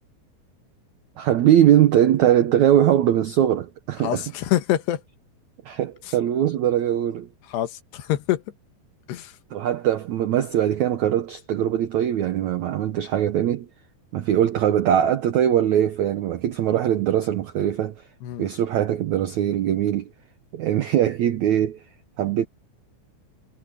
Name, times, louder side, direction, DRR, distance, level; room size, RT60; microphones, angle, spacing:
voice 1, 1.2-4.2 5.6-7.3 9.5-13.7 14.1-17.9 18.4-20.1 20.5-21.8 22.2-22.5, right 11 dB, 85° right, 1.6 m, -21 dB
voice 2, 4.0-5.0 6.1-6.2 7.5-8.4 9.1-9.3 18.2-18.5, left 13 dB, 85° left, 3.4 m, -25 dB
omnidirectional pair, 4.7 m